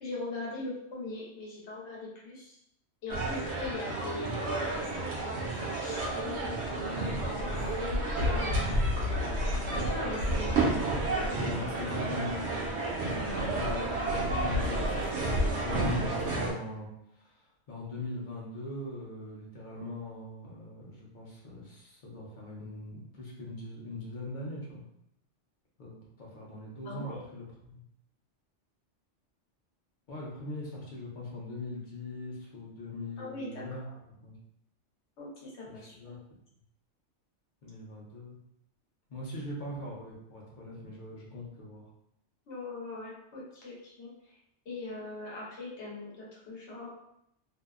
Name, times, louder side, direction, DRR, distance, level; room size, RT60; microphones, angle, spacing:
voice 1, 0.0-2.6 3.0-6.6 7.2-10.6 11.1-11.6 13.1-13.6 26.8-27.2 33.2-34.0 35.2-36.2 42.5-44.3 44.7-47.0, left 2 dB, 70° left, -4 dB, 1.1 m, -41 dB
sound 1, 3.1-16.5, right 1 dB, 70° right, 0.9 m, -30 dB
voice 2, 11.5-12.4 13.4-24.8 25.8-27.8 30.1-34.4 35.7-36.2 37.6-38.4 39.1-41.8, left 2 dB, 50° left, -4 dB, 0.7 m, -41 dB
2.6 x 2.0 x 2.3 m, 0.77 s
omnidirectional pair, 1.2 m